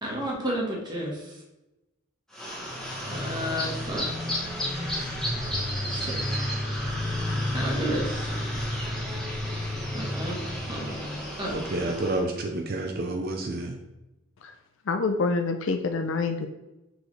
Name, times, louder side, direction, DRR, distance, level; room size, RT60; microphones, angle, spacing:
voice 1, 0.0-1.3 3.1-4.0 5.9-6.2 7.5-8.3 9.9-10.4 10.7-11.1 11.4-11.5 11.8-11.9, equal, 20° right, -2 dB, 1.4 m, -32 dB
sound 1, 2.3-12.2, left 1 dB, 5° left, 1.3 m, -31 dB
voice 2, 11.5-13.7, right 2 dB, 45° right, 3 dB, 0.6 m, -29 dB
voice 3, 14.9-16.5, left 4 dB, 65° left, 7 dB, 0.5 m, -26 dB
6.3 x 4.6 x 3.3 m, 0.98 s
head